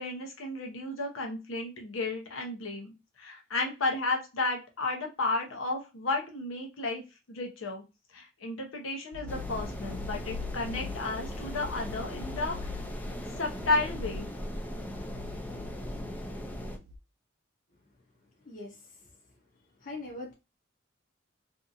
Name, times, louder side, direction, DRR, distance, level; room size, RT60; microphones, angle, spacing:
voice 1, 0.0-2.9 3.2-7.0 7.3-7.8 8.1-12.7 13.4-14.3, left 2 dB, 80° left, 2 dB, 0.7 m, -33 dB
sound 1, 9.1-17.0, left 5 dB, 60° right, 0.4 m, -43 dB
sound 2, 9.3-16.8, equal, 10° left, 0.4 m, -39 dB
voice 2, 18.4-19.4 19.8-20.3, left 2 dB, 45° left, -1 dB, 0.7 m, -43 dB
2.7 x 2.5 x 2.5 m, 0.27 s
head